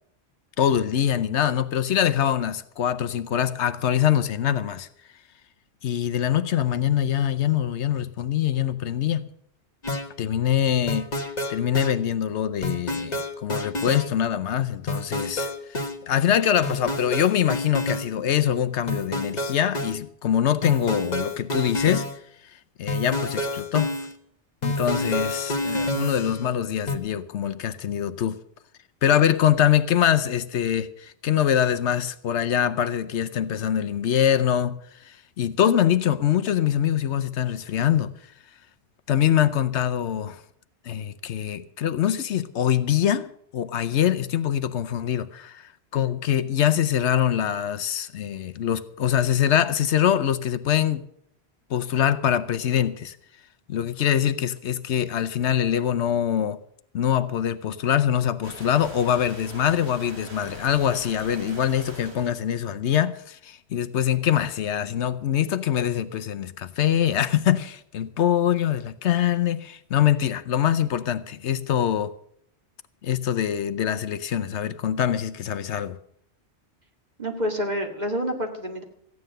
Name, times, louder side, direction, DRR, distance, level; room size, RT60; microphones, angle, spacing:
voice 1, 0.6-4.9 5.8-9.3 10.2-11.1 11.5-22.1 22.8-23.9 24.6-28.4 29.0-34.7 35.0-38.1 39.1-40.4 40.9-51.0 51.7-53.2 53.7-56.6 56.9-72.1 73.0-76.0, left 10 dB, 80° left, 1.0 m, -24 dB
sound 1, 9.8-10.1 10.9-12.0 12.6-14.1 14.9-16.0 16.6-18.1 18.9-20.0 20.6-22.2 22.9-24.1 24.6-26.5 26.9-27.0, left 1 dB, 40° left, 1.4 m, -28 dB
sound 2, 58.4-62.4, right 2 dB, 70° right, 3.6 m, -42 dB
voice 2, 77.2-78.8, equal, 40° right, 2.2 m, -28 dB
15.0 x 9.6 x 6.6 m
omnidirectional pair, 1.2 m